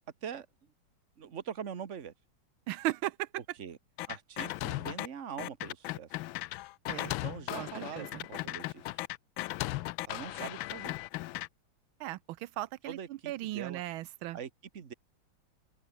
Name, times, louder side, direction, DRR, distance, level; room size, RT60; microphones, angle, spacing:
voice 1, 1.2-2.1 3.6-3.8 4.1-6.3 7.2-9.0 10.0-11.0 12.8-13.8 14.3-14.9, right 7 dB, 40° right, 1.6 m, -43 dB
voice 2, 2.7-3.3 6.9-7.1 7.6-8.2 12.0-13.0 13.3-14.4, right 16 dB, 85° right, 1.5 m, -36 dB
sound 1, 4.0-5.1 5.4-11.5, left 18 dB, 80° left, 1.3 m, -37 dB
omnidirectional pair, 2.2 m